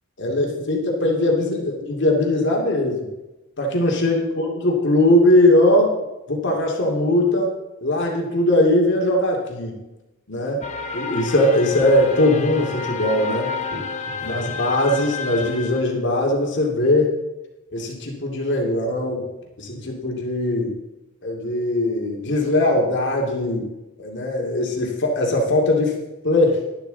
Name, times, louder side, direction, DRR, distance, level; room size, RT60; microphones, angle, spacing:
voice 1, 0.2-3.1 3.6-5.9 6.3-7.5 7.8-9.8 10.3-10.6 10.9-13.8 14.2-17.2 17.7-19.3 19.6-20.7 21.2-23.7 24.0-26.0 26.2-26.6, left 1 dB, 55° left, 0 dB, 2.4 m, -20 dB
sound 1, 10.6-15.8, left 4 dB, 35° left, 1.2 m, -30 dB
12.0 x 11.5 x 4.0 m, 1.0 s
head